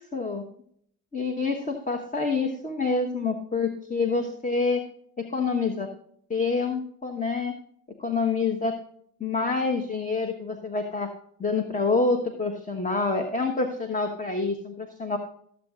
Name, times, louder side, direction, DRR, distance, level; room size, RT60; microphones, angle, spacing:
voice 1, 0.1-0.4 1.1-4.8 5.2-5.9 6.3-7.5 8.0-8.7 9.2-11.1 11.4-15.2, left 4 dB, 20° left, 4 dB, 1.2 m, -27 dB
16.0 x 7.6 x 2.5 m, 0.65 s
supercardioid pair, 95°, 44 cm